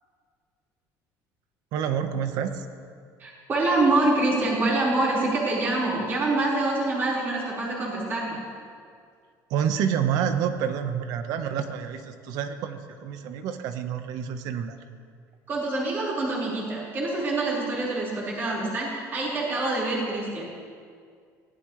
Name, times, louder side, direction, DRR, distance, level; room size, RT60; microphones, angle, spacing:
voice 1, 1.7-2.7 9.5-14.8, right 8 dB, 60° right, 8 dB, 1.2 m, -28 dB
voice 2, 3.2-8.4 15.5-20.5, right 2 dB, 30° right, -6 dB, 4.8 m, -26 dB
24.0 x 17.0 x 3.3 m, 2.1 s
cardioid pair, 170°, 7 cm